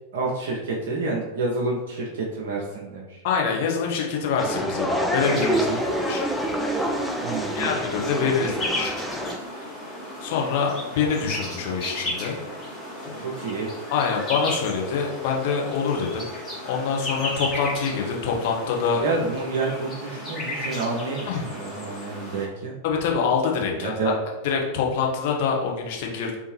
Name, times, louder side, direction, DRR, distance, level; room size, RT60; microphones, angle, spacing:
voice 1, 0.1-3.2 5.3-5.8 7.2-7.7 13.2-13.7 19.0-22.7 23.8-24.2, right 3 dB, 60° right, -3 dB, 0.5 m, -29 dB
voice 2, 3.2-5.7 6.1-6.2 6.8-6.9 7.5-9.0 10.2-12.4 13.9-16.2 16.6-19.0 21.3-21.4 22.8-23.9 24.4-26.4, left 6 dB, 50° left, -1 dB, 0.7 m, -25 dB
sound 1, 4.4-9.4, equal, ahead, 0.4 m, -27 dB
sound 2, 5.2-22.5, left 1 dB, 20° left, 1.2 m, -35 dB
3.5 x 2.7 x 3.1 m, 1.1 s
figure-of-eight pair, 90°, 0 cm